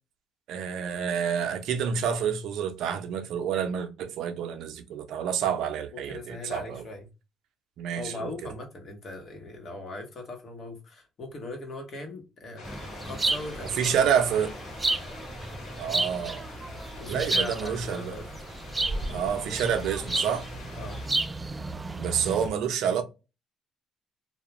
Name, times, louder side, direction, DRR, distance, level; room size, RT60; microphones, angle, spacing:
voice 1, 0.5-6.8 7.8-8.3 13.8-14.5 15.8-16.5 17.1-18.2 19.1-20.5 22.0-23.0, right 8 dB, 75° right, 0.5 m, -28 dB
voice 2, 5.9-7.1 8.0-12.6 13.0-14.0 17.0-18.3 20.8-21.0, left 2 dB, 50° left, 1.1 m, -39 dB
rain glassroof thunder, 12.6-21.1, left 4 dB, 80° left, 1.0 m, -45 dB
sound 1, 12.6-22.5, right 2 dB, 20° right, 0.3 m, -32 dB
2.3 x 2.2 x 3.0 m
cardioid pair, 90°, 0 cm